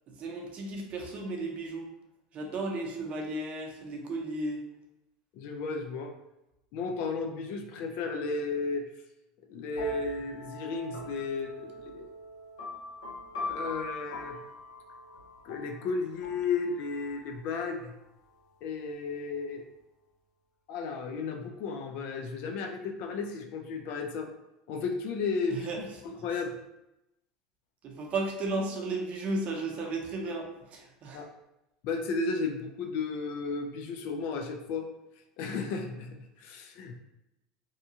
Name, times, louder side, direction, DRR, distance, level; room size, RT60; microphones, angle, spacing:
voice 1, 0.1-1.9 2.3-4.6 25.5-25.8 27.8-31.2, right 2 dB, 45° right, 1 dB, 0.7 m, -34 dB
voice 2, 5.3-6.1 6.7-8.8 9.5-12.1 13.4-14.4 15.4-17.9 18.6-19.7 20.7-24.3 24.7-25.9 26.2-26.5 30.2-30.3 31.1-31.3 31.8-34.9 35.4-37.0, left 4 dB, 60° left, 4 dB, 0.4 m, -34 dB
sound 1, 9.7-17.3, left 1 dB, 90° left, 0.8 m, -41 dB
2.7 x 2.3 x 2.7 m, 0.91 s
hypercardioid pair, 100°, 3 cm